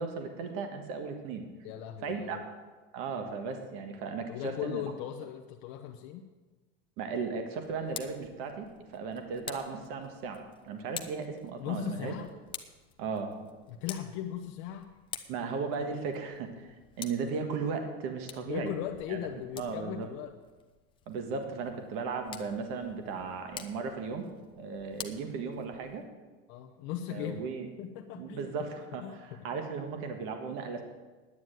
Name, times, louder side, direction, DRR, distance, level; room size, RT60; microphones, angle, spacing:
voice 1, 0.0-1.4 2.0-2.4 2.9-4.8 7.0-8.7 8.9-12.1 13.0-13.5 15.3-18.7 19.1-19.2 19.6-20.1 21.1-24.3 24.6-26.0 27.1-27.7 28.1-30.8, right 5 dB, 45° right, 6 dB, 1.6 m, -36 dB
voice 2, 1.6-2.4 4.3-6.2 11.6-12.3 13.7-14.9 18.5-20.3 26.5-27.4 27.8-28.7 29.0-29.4, left 11 dB, 45° left, 4 dB, 0.8 m, -38 dB
Tick, 7.6-26.1, left 8 dB, 15° left, 0.7 m, -49 dB
9.9 x 9.4 x 9.1 m, 1.3 s
supercardioid pair, 165°, 30 cm